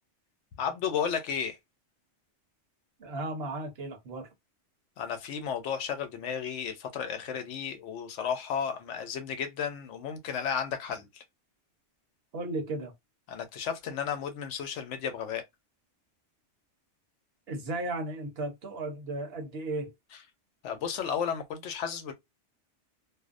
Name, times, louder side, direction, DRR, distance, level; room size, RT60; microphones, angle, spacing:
voice 1, 0.6-1.6 5.0-11.2 13.3-15.4 20.6-22.1, left 7 dB, 85° left, 0.9 m, -33 dB
voice 2, 3.0-4.3 12.3-12.9 17.5-19.9, right 2 dB, 60° right, 1.0 m, -35 dB
2.5 x 2.0 x 2.4 m
omnidirectional pair, 1.2 m